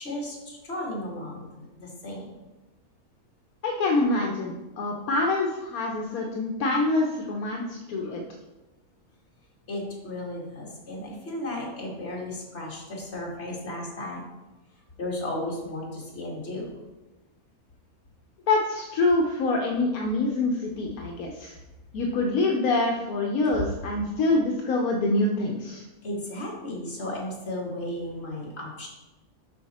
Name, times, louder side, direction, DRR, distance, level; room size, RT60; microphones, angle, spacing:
voice 1, 0.0-2.4 9.7-14.3 15.0-16.8 26.0-28.9, left 1 dB, 45° left, -3 dB, 2.1 m, -34 dB
voice 2, 3.6-8.2 18.5-21.6 21.9-25.8, left 2 dB, 75° left, 0 dB, 1.2 m, -25 dB
8.1 x 5.6 x 4.2 m, 1.1 s
omnidirectional pair, 1.6 m